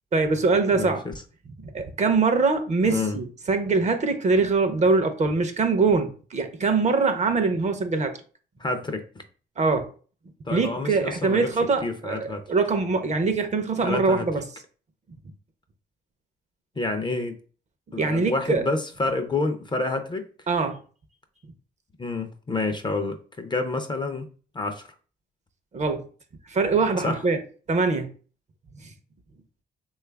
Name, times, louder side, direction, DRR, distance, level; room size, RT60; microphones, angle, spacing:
voice 1, 0.1-1.0 1.6-8.2 9.6-9.9 10.5-14.4 18.0-18.7 20.5-20.8 25.7-26.1 26.5-27.4 27.7-28.1, right 4 dB, 35° right, 0.5 m, -23 dB
voice 2, 0.7-1.1 2.9-3.2 8.6-9.2 10.5-11.5 11.8-12.4 13.8-14.3 16.8-17.4 17.9-20.3 22.0-24.3 24.5-24.9 27.0-27.2, left 3 dB, 25° left, 0.5 m, -28 dB
3.2 x 2.3 x 3.2 m
cardioid pair, 90°, 20 cm